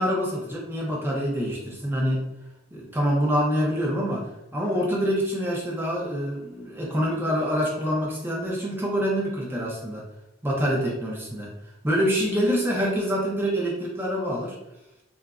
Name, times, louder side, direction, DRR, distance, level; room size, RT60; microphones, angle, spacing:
voice 1, 0.0-2.2 2.7-10.0 10.4-11.5 11.8-14.6, equal, 10° right, -4 dB, 0.6 m, -26 dB
2.9 x 2.4 x 2.4 m, 0.90 s
head